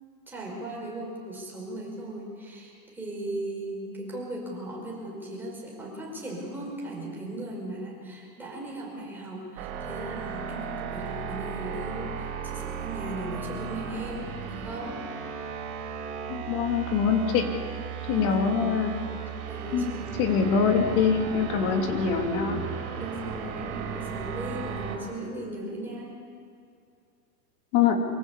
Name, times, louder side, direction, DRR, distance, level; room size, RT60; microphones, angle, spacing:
voice 1, 0.3-15.0 18.1-18.6 19.5-20.5 23.0-26.1, right 1 dB, 5° right, -3 dB, 5.2 m, -37 dB
sound 1, 9.6-25.0, right 7 dB, 60° right, 4.4 m, -36 dB
voice 2, 16.3-17.5 18.1-19.0 19.7-19.9 20.2-22.6 27.7-28.0, left 6 dB, 45° left, 3 dB, 3.0 m, -24 dB
sound 2, 20.0-25.1, right 5 dB, 30° right, 3.6 m, -42 dB
25.0 x 16.5 x 8.3 m, 2.4 s
supercardioid pair, 155°, 45 cm